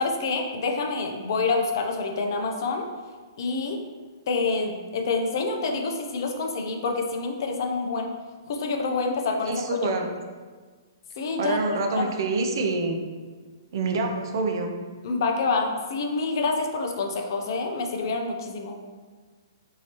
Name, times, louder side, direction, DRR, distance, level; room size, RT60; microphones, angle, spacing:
voice 1, 0.0-2.9 3.4-3.8 4.3-8.1 8.5-9.8 11.2-12.1 15.0-18.8, left 3 dB, 60° left, 3 dB, 0.5 m, -27 dB
voice 2, 9.5-10.1 11.4-13.0 13.7-14.7, right 3 dB, 60° right, 4 dB, 0.4 m, -26 dB
3.2 x 2.7 x 2.9 m, 1.5 s
hypercardioid pair, 135°, 2 cm